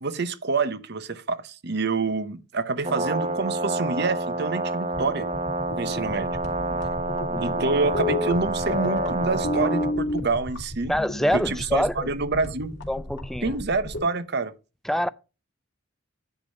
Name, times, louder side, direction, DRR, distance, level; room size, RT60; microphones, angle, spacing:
voice 1, 0.0-5.3 5.8-6.4 7.4-10.9 11.3-12.7 13.4-14.5, right 4 dB, 55° right, 0.9 m, -27 dB
Brass instrument, 2.8-9.9, right 2 dB, 30° right, 1.0 m, -28 dB
sound 1, 4.9-14.0, left 2 dB, 60° left, 2.7 m, -31 dB
voice 2, 10.9-12.1 12.9-13.6 14.8-15.1, equal, ahead, 0.3 m, -26 dB
10.5 x 3.8 x 5.1 m
head